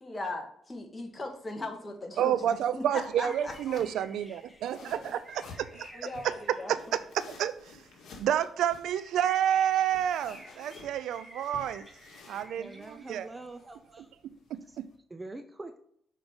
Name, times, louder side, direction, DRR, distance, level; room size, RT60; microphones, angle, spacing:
voice 1, 0.0-2.8 3.2-3.8 5.0-5.1 5.9-6.7, left 2 dB, 25° left, 3 dB, 2.0 m, -39 dB
voice 2, 2.2-6.4 6.7-6.8 7.1-7.8 8.2-11.9 12.3-13.3 14.5-14.9, right 10 dB, 80° right, 14 dB, 0.5 m, -30 dB
sound 1, 2.3-14.9, left 4 dB, 70° left, 2.1 m, -54 dB
sound 2, 2.8-7.5 8.8-13.6, equal, ahead, 1.5 m, -53 dB
voice 3, 12.6-14.1 14.7-14.8 15.1-15.8, right 2 dB, 20° right, 8 dB, 0.6 m, -44 dB
6.5 x 5.0 x 5.2 m, 0.69 s
cardioid pair, 90°, 0 cm